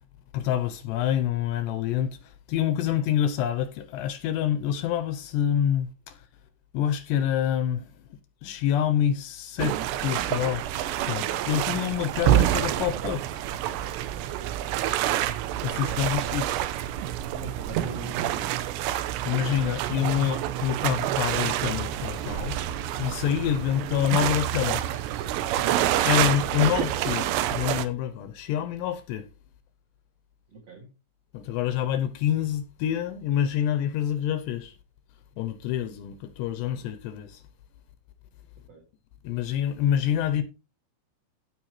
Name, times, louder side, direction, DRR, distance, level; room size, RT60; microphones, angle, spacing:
voice 1, 0.3-6.3 6.7-7.9 8.4-13.4 15.6-16.6 19.2-24.9 25.8-29.3 31.3-34.8 35.4-37.4 39.2-40.4, left 10 dB, 80° left, 2.7 m, -27 dB
sound 1, 9.6-27.9, right 12 dB, 80° right, 2.7 m, -27 dB
voice 2, 15.8-16.1 17.3-18.5 30.5-30.9 38.7-38.8, right 1 dB, 45° right, 2.5 m, -41 dB
sound 2, 20.9-27.3, right 2 dB, 60° right, 5.4 m, -51 dB
15.5 x 5.8 x 3.1 m
omnidirectional pair, 5.3 m